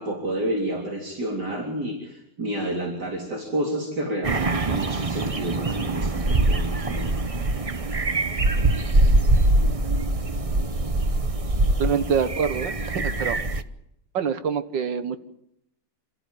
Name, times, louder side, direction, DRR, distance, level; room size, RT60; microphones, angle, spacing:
voice 1, 0.0-7.1, right 1 dB, 65° right, 0 dB, 4.2 m, -30 dB
sound 1, 4.2-13.6, right 2 dB, 30° right, 0.6 m, -23 dB
voice 2, 11.8-13.4 14.1-15.2, right 6 dB, 80° right, 11 dB, 2.1 m, -25 dB
28.0 x 14.0 x 9.2 m, 0.79 s
omnidirectional pair, 1.9 m